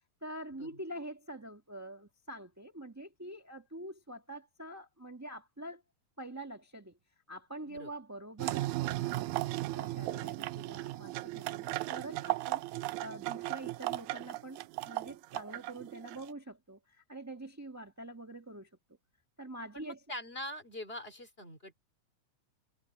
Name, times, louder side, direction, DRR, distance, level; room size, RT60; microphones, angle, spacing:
voice 1, 0.2-5.8 6.2-7.0 7.3-18.7 19.4-20.0, right 1 dB, 10° right, 0.8 m, -46 dB
sound 1, 8.4-16.3, right 18 dB, 85° right, 2.1 m, -36 dB
voice 2, 19.7-21.8, left 1 dB, 20° left, 3.6 m, -43 dB
omnidirectional pair, 3.3 m